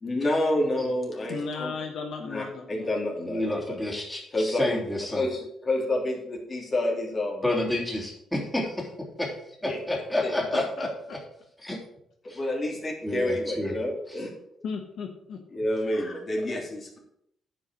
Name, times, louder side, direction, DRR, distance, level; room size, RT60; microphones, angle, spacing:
voice 1, 0.0-1.7 2.2-3.8 4.3-4.8 5.1-7.4 9.6-9.8 10.2-10.6 12.3-14.3 15.5-17.0, left 1 dB, 35° left, -1 dB, 3.3 m, -29 dB
voice 2, 1.3-2.9 10.8-10.9 14.6-15.4 15.8-15.9, left 5 dB, 70° left, 3 dB, 1.3 m, -35 dB
voice 3, 3.3-5.2 7.4-8.9 9.2-9.3 9.6-10.9 11.6-11.8 12.3-12.4 13.0-13.8 14.1-14.2, left 1 dB, 10° left, -1 dB, 3.2 m, -29 dB
9.6 x 5.7 x 6.5 m, 0.74 s
cardioid pair, 90°, 0 cm